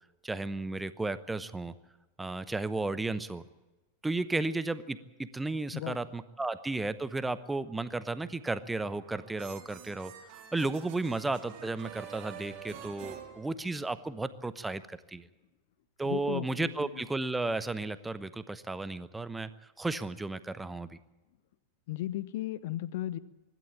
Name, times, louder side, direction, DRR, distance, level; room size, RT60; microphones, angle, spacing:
voice 1, 0.2-1.7 2.2-3.4 4.0-10.1 10.5-15.3 16.0-19.5 19.8-20.9, right 2 dB, 10° right, 14 dB, 0.9 m, -34 dB
sound 1, 8.8-14.1, right 9 dB, 40° right, 3.5 m, -48 dB
voice 2, 16.0-17.1 21.9-23.2, left 14 dB, 55° left, 17 dB, 0.8 m, -36 dB
24.5 x 12.5 x 8.9 m, 1.1 s
figure-of-eight pair, 90°, 0 cm